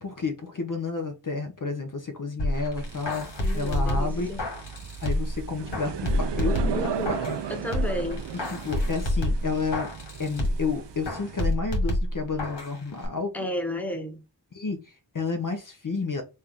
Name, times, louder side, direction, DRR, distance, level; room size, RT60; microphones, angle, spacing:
voice 1, 0.0-3.3 3.5-4.3 5.0-7.4 8.5-9.9 10.2-13.3 14.5-16.2, left 4 dB, 50° left, 0.7 m, -31 dB
sound 1, 2.4-5.4 5.7-7.4 7.7-10.7 11.0-12.7 13.0-13.1, left 1 dB, 85° left, 1.4 m, -28 dB
sound 2, 2.7-11.5, right 8 dB, 85° right, 0.5 m, -36 dB
voice 2, 3.4-4.5 6.7-7.2 7.5-8.2 13.3-14.2, left 1 dB, 5° left, 1.1 m, -33 dB
4.3 x 2.5 x 3.4 m
wide cardioid pair, 55°, 41 cm